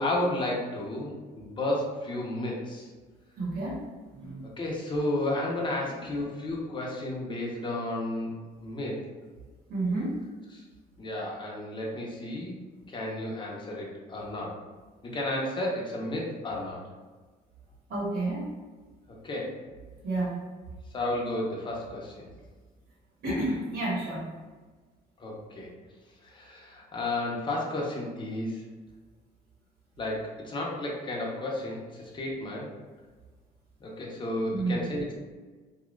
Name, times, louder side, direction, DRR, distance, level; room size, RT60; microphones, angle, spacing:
voice 1, 0.0-2.9 4.6-9.0 10.5-10.6 11.0-12.6 12.9-14.6 15.0-16.8 19.1-19.5 20.9-22.3 25.2-25.7 26.2-28.7 30.0-32.7 33.8-35.1, left 1 dB, 30° left, -3 dB, 0.8 m, -32 dB
voice 2, 3.4-3.8 4.1-4.5 9.7-10.1 17.9-18.5 20.0-20.4 23.2-24.2 34.5-34.8, right 2 dB, 70° right, -6 dB, 1.2 m, -30 dB
2.8 x 2.4 x 3.1 m, 1.4 s
cardioid pair, 110°, 17 cm